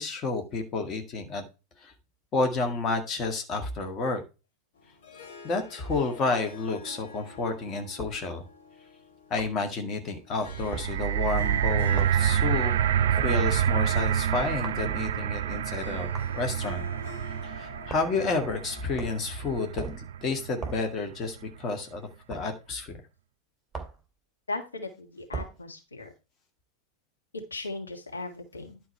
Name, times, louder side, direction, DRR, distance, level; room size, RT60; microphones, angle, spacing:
voice 1, 0.0-1.4 1.8-1.9 2.3-4.2 5.4-8.4 9.3-12.7 13.2-16.8 17.6-19.8 20.2-23.0, left 3 dB, 30° left, 4 dB, 1.8 m, -30 dB
Harp, 4.7-20.0, left 4 dB, 55° left, 2.2 m, -48 dB
sound 1, 8.0-8.2 9.4-9.6 10.7-10.9 12.0-12.2 13.2-13.4 14.6-14.9 16.1-16.3 17.9-18.2 19.0-19.3 19.8-20.1 20.6-20.9 22.3-22.5 23.7-24.0 25.3-25.6, right 4 dB, 5° right, 2.4 m, -38 dB
sound 2, 10.4-20.7 21.4-21.5, right 10 dB, 55° right, 0.4 m, -28 dB
voice 2, 24.5-26.1 27.5-28.8, left 3 dB, 75° left, 2 dB, 1.9 m, -37 dB
11.0 x 4.6 x 4.5 m, 0.30 s
figure-of-eight pair, 90°, 0 cm